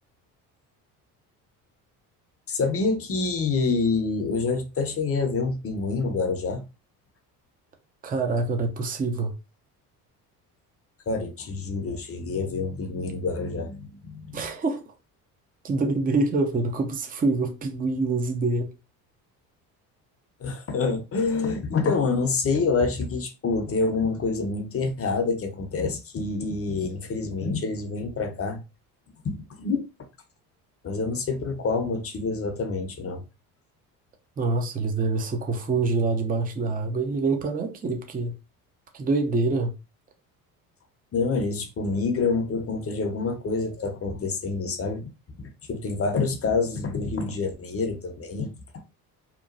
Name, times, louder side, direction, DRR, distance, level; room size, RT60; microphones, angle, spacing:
voice 1, 2.5-6.6 11.1-14.5 20.4-28.6 29.2-29.8 30.8-33.2 41.1-45.1 45.4-48.5, left 4 dB, 30° left, 0.7 m, -27 dB
voice 2, 8.0-9.3 14.3-14.9 15.6-18.7 34.4-38.3 38.9-39.7, right 3 dB, 20° right, 0.6 m, -25 dB
2.9 x 2.2 x 2.5 m
hypercardioid pair, 65°, 45 cm